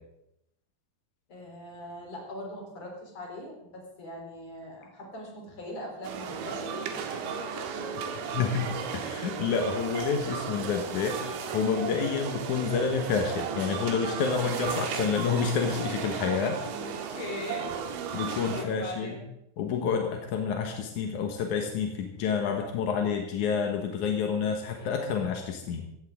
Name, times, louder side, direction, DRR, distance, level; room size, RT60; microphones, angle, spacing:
voice 1, 1.3-8.5 16.8-17.7 18.5-19.3 24.8-24.9, left 1 dB, 35° left, 0 dB, 4.5 m, -41 dB
sound 1, 6.0-18.6, right 7 dB, 80° right, 3.7 m, -35 dB
voice 2, 8.3-16.6 18.1-19.1 19.6-25.8, left 6 dB, 65° left, 3 dB, 2.0 m, -29 dB
17.0 x 15.0 x 3.7 m, 0.83 s
omnidirectional pair, 5.2 m